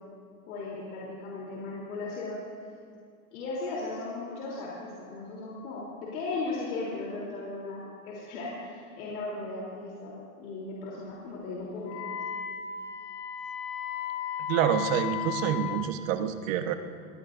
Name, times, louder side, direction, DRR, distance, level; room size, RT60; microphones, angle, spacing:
voice 1, 0.5-2.4 3.3-12.0, left 3 dB, 70° left, -5 dB, 3.5 m, -37 dB
Wind instrument woodwind instrument, 11.8-15.9, left 9 dB, 50° left, 1.4 m, -35 dB
voice 2, 14.5-16.7, right 9 dB, 65° right, 8 dB, 1.3 m, -27 dB
20.0 x 17.0 x 2.6 m, 2.3 s
supercardioid pair, 135°, 43 cm